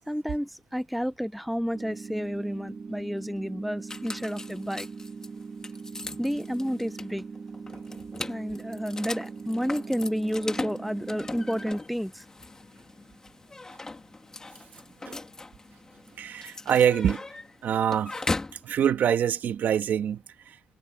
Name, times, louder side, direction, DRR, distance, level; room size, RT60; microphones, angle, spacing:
voice 1, 0.1-4.9 6.2-7.2 8.3-12.3, equal, ahead, 0.5 m, -31 dB
sound 1, 1.7-11.7, right 4 dB, 35° right, 1.2 m, -41 dB
sound 2, 3.9-18.6, left 3 dB, 20° left, 2.0 m, -39 dB
voice 2, 16.2-17.2 17.6-18.1 18.6-20.7, right 9 dB, 60° right, 1.6 m, -25 dB
cardioid pair, 140°, 3 cm